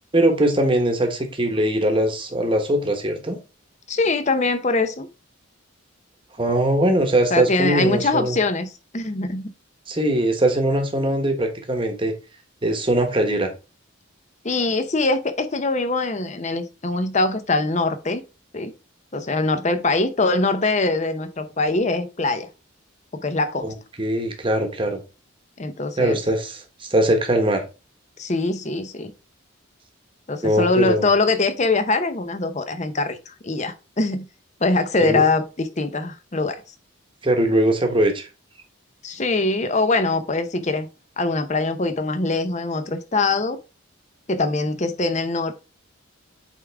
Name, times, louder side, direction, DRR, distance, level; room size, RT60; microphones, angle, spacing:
voice 1, 0.1-3.4 6.4-8.4 9.9-12.1 12.6-13.5 23.6-25.0 26.0-27.6 30.4-31.1 35.0-35.3 37.2-38.3, right 1 dB, 25° right, 1.1 m, -21 dB
voice 2, 3.9-5.1 7.3-9.5 14.4-18.2 18.5-18.7 19.1-22.5 23.1-23.7 25.6-26.2 28.2-29.1 30.3-34.2 34.6-36.6 39.0-40.9 41.2-43.6 44.3-45.5, left 3 dB, 35° left, 0.7 m, -23 dB
8.3 x 3.6 x 3.4 m
head